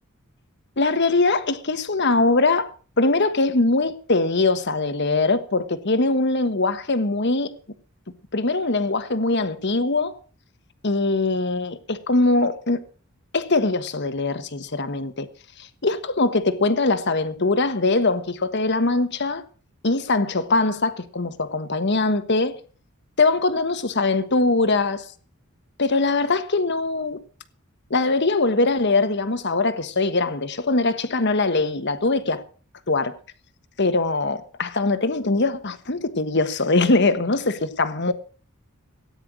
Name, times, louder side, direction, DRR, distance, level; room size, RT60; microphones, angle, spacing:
voice 1, 0.8-2.7 3.0-7.5 8.3-10.2 10.8-12.8 13.3-15.3 15.8-19.4 19.8-22.6 23.2-25.0 25.8-27.2 27.9-32.4 32.9-33.1 33.8-38.1, left 3 dB, 55° left, 1.3 m, -22 dB
17.0 x 9.8 x 6.3 m
head